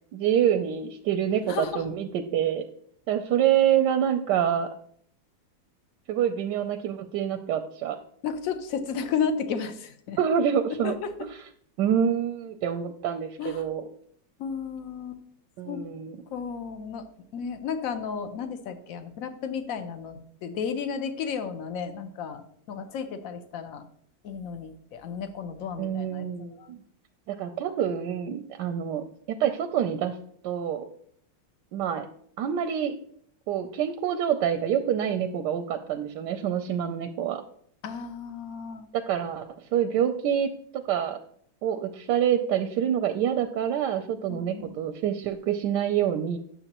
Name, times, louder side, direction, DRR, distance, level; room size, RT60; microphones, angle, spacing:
voice 1, 0.1-2.6 3.1-4.7 6.1-8.0 10.2-10.9 11.8-13.8 15.6-16.2 25.8-26.8 27.3-30.1 30.4-30.8 31.7-32.1 32.4-32.9 33.5-37.4 38.9-41.2 41.6-46.4, right 9 dB, 75° right, 7 dB, 1.1 m, -26 dB
voice 2, 1.5-1.8 8.2-10.2 10.8-11.1 13.4-13.7 14.4-15.2 15.7-15.8 16.3-17.0 17.3-23.8 24.2-26.3 26.6-26.7 37.8-38.9 44.3-44.7, left 6 dB, 60° left, 9 dB, 0.9 m, -33 dB
9.8 x 6.9 x 2.9 m, 0.65 s
omnidirectional pair, 2.2 m